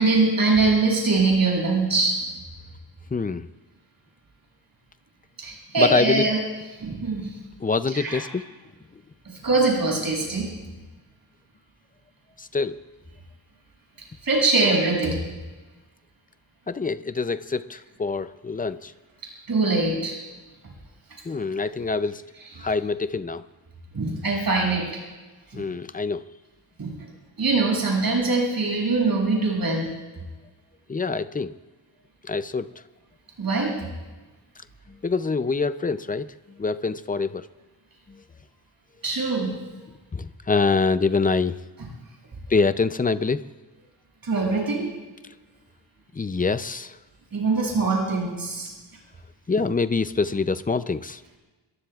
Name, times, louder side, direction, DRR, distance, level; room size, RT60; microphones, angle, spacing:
voice 1, 0.0-2.2 5.4-6.4 6.8-7.3 8.0-8.2 9.4-10.5 14.2-15.2 19.5-20.2 22.6-22.7 23.9-24.9 25.5-25.6 26.8-26.9 27.4-29.9 33.4-33.7 39.0-39.5 44.2-44.8 47.3-48.7, right 3 dB, 50° right, -3 dB, 7.1 m, -22 dB
voice 2, 3.1-3.5 5.8-6.3 7.6-8.4 12.4-12.8 16.7-18.9 21.3-22.3 22.6-23.4 25.5-26.2 30.9-31.5 32.2-32.7 35.0-37.5 38.1-38.2 40.1-41.6 42.5-43.4 46.1-47.0 49.5-51.2, left 4 dB, 20° left, 12 dB, 0.4 m, -25 dB
26.5 x 23.0 x 2.4 m, 1.2 s
wide cardioid pair, 160°, 45 cm